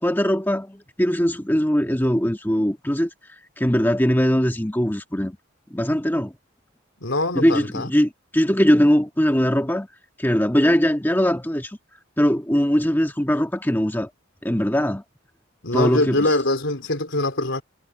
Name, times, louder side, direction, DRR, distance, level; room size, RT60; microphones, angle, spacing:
voice 1, 0.0-3.1 3.6-5.4 5.7-6.3 7.3-9.9 10.2-11.8 12.2-14.1 14.4-15.0 15.7-16.3, equal, 10° left, 1.5 m, -21 dB
voice 2, 7.0-7.9 15.6-17.6, left 2 dB, 70° left, 4.0 m, -23 dB
head